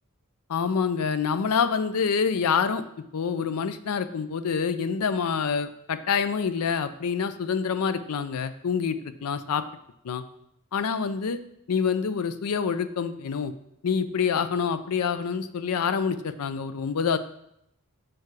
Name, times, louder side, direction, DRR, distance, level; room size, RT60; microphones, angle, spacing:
voice 1, 0.5-2.8 3.1-9.6 10.0-10.2 10.7-11.4 11.7-13.5 13.8-17.2, left 6 dB, 75° left, 12 dB, 0.5 m, -26 dB
6.0 x 4.7 x 4.7 m, 0.78 s
head